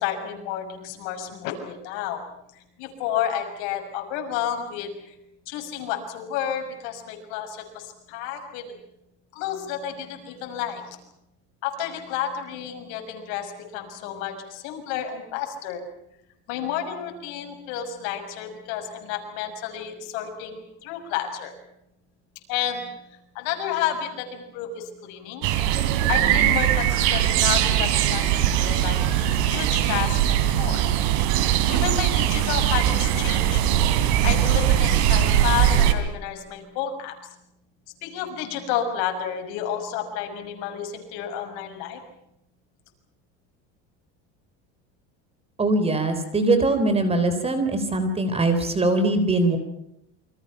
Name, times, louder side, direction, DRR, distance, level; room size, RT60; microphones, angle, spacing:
voice 1, 0.0-2.3 2.5-5.1 5.5-8.8 9.3-11.0 11.6-15.8 16.5-21.5 22.5-22.9 23.3-25.5 26.1-30.8 31.7-33.7 34.2-37.1 38.0-42.0, left 9 dB, 75° left, 4 dB, 6.4 m, -31 dB
sound 1, 25.4-35.9, right 11 dB, 85° right, 3.3 m, -21 dB
voice 2, 45.6-49.6, right 2 dB, 20° right, 9 dB, 3.9 m, -22 dB
28.5 x 25.0 x 5.8 m, 0.81 s
cardioid pair, 140°, 33 cm